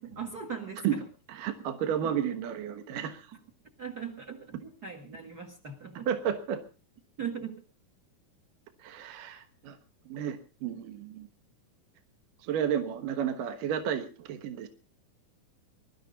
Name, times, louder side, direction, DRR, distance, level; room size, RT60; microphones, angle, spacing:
voice 1, 0.1-1.0 2.0-2.1 3.8-6.1 7.2-7.6, right 6 dB, 35° right, 7 dB, 1.7 m, -39 dB
voice 2, 1.3-3.3 6.1-6.6 8.8-9.8 10.1-11.3 12.4-14.7, right 8 dB, 70° right, 7 dB, 2.8 m, -32 dB
22.5 x 13.0 x 4.0 m, 0.35 s
omnidirectional pair, 4.1 m